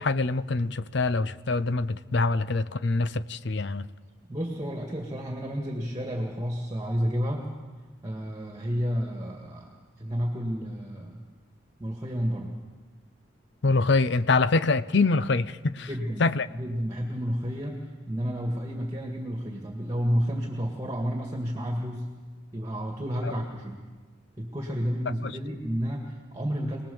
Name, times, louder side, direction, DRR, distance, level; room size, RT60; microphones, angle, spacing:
voice 1, 0.0-3.9 13.6-15.9 16.2-16.5 23.2-23.3 25.2-25.4, left 3 dB, 60° left, 15 dB, 0.6 m, -25 dB
voice 2, 4.3-7.5 8.0-11.2 11.8-12.6 15.9-17.8 18.1-22.1 22.5-23.8 24.4-26.8, equal, 15° right, 0 dB, 2.0 m, -31 dB
25.0 x 19.5 x 7.1 m, 1.4 s
head